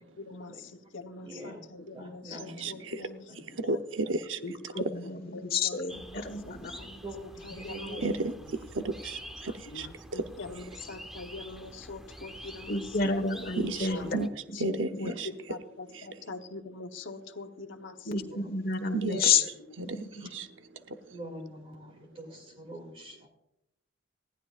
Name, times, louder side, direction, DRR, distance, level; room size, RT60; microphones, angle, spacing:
voice 1, 0.2-3.3 3.5-3.8 4.7-4.8 5.3-6.4 6.7-8.3 9.7-13.1 14.0-14.1 14.5-15.1 15.5-18.4 21.8-21.9, left 3 dB, 85° left, 6 dB, 1.1 m, -44 dB
voice 2, 1.2-2.8 3.3-3.5 6.7-8.1 13.9-14.0 18.3-18.7 19.1-19.4 20.2-20.3 21.1-23.3, right 1 dB, 30° right, 2 dB, 2.6 m, -45 dB
voice 3, 2.6-3.0 3.6-4.4 4.8-4.9 8.0-8.3 8.7-9.9 10.1-10.2 13.6-14.3 14.6-15.3 18.9-19.2 19.8-20.0 20.3-20.5, right 3 dB, 85° right, 8 dB, 0.8 m, -32 dB
voice 4, 4.4-6.8 12.7-14.1 15.0-15.2 18.0-19.5 19.8-20.2, left 5 dB, 50° left, 5 dB, 1.3 m, -30 dB
sound 1, 5.9-14.3, equal, ahead, 0.9 m, -47 dB
20.0 x 15.5 x 2.5 m, 0.84 s
head